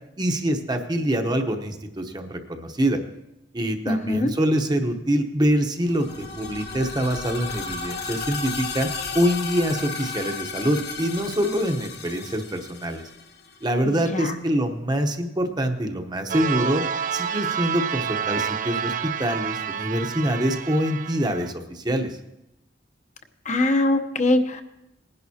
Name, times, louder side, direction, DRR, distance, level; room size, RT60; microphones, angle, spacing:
voice 1, 0.2-3.0 3.5-8.9 9.1-13.0 13.6-16.8 17.1-22.2, equal, 25° right, 5 dB, 0.9 m, -25 dB
voice 2, 3.8-4.3 13.8-14.4 23.4-24.6, left 2 dB, 40° left, 7 dB, 0.9 m, -22 dB
sound 1, 5.8-13.7, left 4 dB, 65° left, 1.1 m, -34 dB
sound 2, 16.3-21.5, right 8 dB, 50° right, 0.5 m, -29 dB
20.0 x 11.0 x 2.8 m, 0.87 s
head